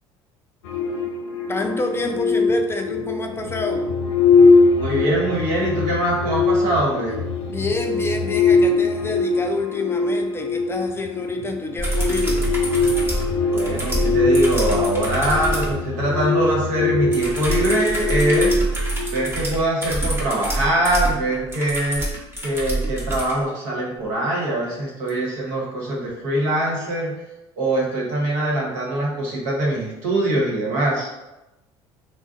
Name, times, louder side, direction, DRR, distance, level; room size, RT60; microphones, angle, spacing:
sound 1, 0.6-19.5, left 3 dB, 85° left, 0.4 m, -21 dB
voice 1, 1.5-3.9 7.1-12.5, left 2 dB, 20° left, 4 dB, 0.4 m, -28 dB
voice 2, 4.8-7.1 13.5-18.6 19.1-22.0 22.4-27.1 27.6-31.1, right 1 dB, 65° right, -4 dB, 1.1 m, -23 dB
sound 2, 11.8-15.7 17.1-23.3 25.1-25.2, right 2 dB, 20° right, 1.1 m, -26 dB
2.4 x 2.1 x 3.7 m, 1.0 s
hypercardioid pair, 70°, 14 cm